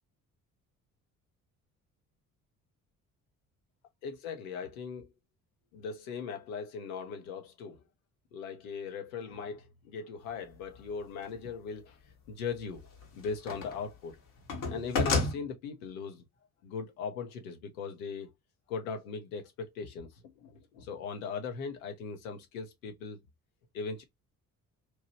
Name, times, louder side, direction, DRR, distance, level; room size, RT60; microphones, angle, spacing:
voice 1, 4.0-5.1 5.7-7.8 8.3-14.2 14.7-16.3 16.6-18.3 18.7-23.2 23.7-24.0, left 5 dB, 75° left, 0.8 m, -39 dB
sound 1, 10.8-10.9 12.5-13.9 14.1-15.3, left 3 dB, 50° left, 1.0 m, -31 dB
2.9 x 2.3 x 3.0 m
figure-of-eight pair, 45°, 43 cm